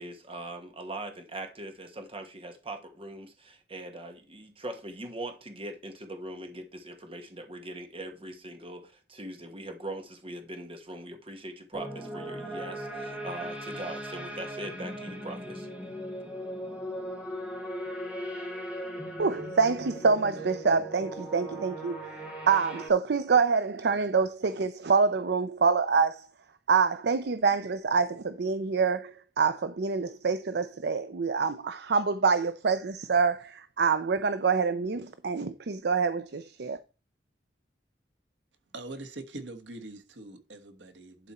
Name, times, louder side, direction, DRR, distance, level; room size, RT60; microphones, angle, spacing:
voice 1, 0.0-15.7, right 1 dB, 30° right, 1.4 m, -41 dB
sound 1, 11.7-22.9, equal, 10° right, 2.2 m, -38 dB
voice 2, 19.2-22.0 22.5-26.3 26.7-36.8, right 5 dB, 65° right, 0.5 m, -26 dB
voice 3, 38.7-41.3, right 2 dB, 85° right, 1.3 m, -43 dB
11.0 x 4.1 x 4.3 m
head